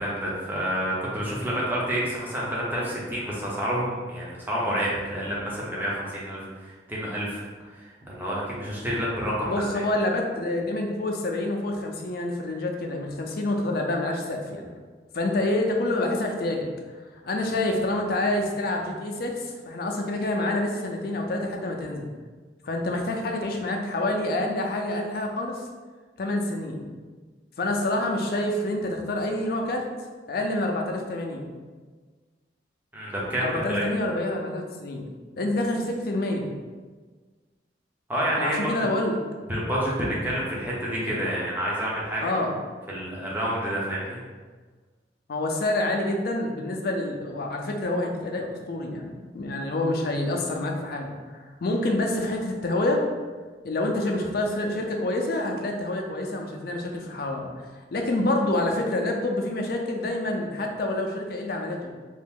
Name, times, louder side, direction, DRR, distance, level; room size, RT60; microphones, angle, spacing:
voice 1, 0.0-9.8 32.9-33.8 38.1-38.7 39.5-42.3 42.9-44.2, equal, 10° right, -6 dB, 0.7 m, -29 dB
voice 2, 9.5-14.7 15.1-16.7 17.2-22.1 22.6-25.6 26.2-26.9 27.6-29.8 30.3-31.5 33.4-35.0 35.4-36.5 38.4-39.1 42.2-42.5 45.3-53.0 53.6-61.9, left 1 dB, 60° left, 2 dB, 0.5 m, -27 dB
2.9 x 2.6 x 3.6 m, 1.4 s
head